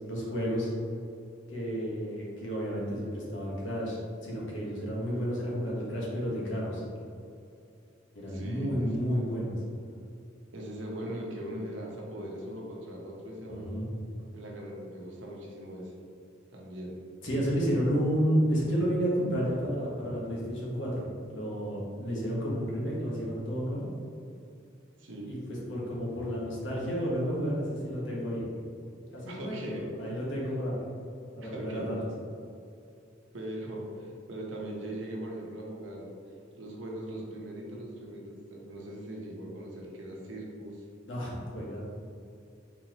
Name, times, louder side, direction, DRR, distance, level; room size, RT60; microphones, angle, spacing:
voice 1, 0.1-0.7 1.5-6.8 8.1-9.5 13.5-13.9 17.2-21.0 21.3-23.9 25.2-25.4 25.7-28.4 29.1-30.8 31.4-31.9 41.1-41.8, equal, 80° left, -5 dB, 1.3 m, -31 dB
voice 2, 8.3-8.8 10.5-13.7 14.3-15.9 16.5-17.0 25.0-25.3 29.3-29.8 31.4-31.9 33.3-36.1 36.6-40.8, right 1 dB, 75° right, -2 dB, 0.9 m, -40 dB
4.3 x 4.2 x 2.9 m, 2.5 s
head